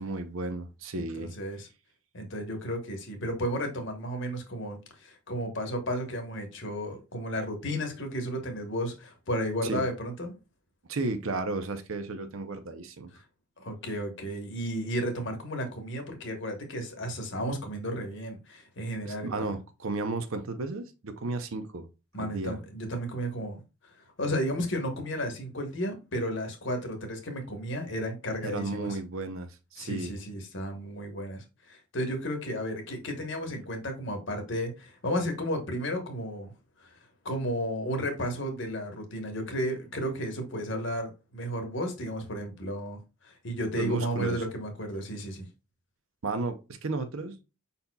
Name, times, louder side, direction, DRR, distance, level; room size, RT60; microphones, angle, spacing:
voice 1, 0.0-1.4 9.6-9.8 10.9-13.1 19.0-21.9 22.2-22.6 28.4-30.2 43.8-44.4 46.2-47.4, right 3 dB, 65° right, 0.7 m, -33 dB
voice 2, 0.9-1.7 2.1-10.4 13.6-19.6 22.1-29.0 29.8-36.5 36.8-36.9 37.2-45.5, equal, 55° left, 1.2 m, -33 dB
5.4 x 4.2 x 2.3 m
head